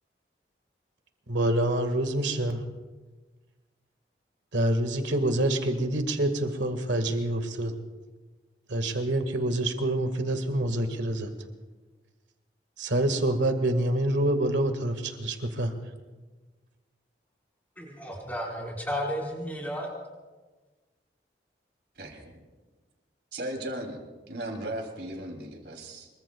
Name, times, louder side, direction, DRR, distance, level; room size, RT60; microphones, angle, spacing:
voice 1, 1.3-2.6 4.5-7.7 8.7-11.3 12.8-15.7, right 1 dB, 85° right, 6 dB, 1.8 m, -26 dB
voice 2, 17.8-19.9, equal, 10° left, -2 dB, 4.5 m, -33 dB
voice 3, 22.0-22.4 23.3-24.0 24.3-26.1, right 1 dB, 70° right, 3 dB, 3.0 m, -36 dB
26.0 x 23.0 x 2.4 m, 1.3 s
head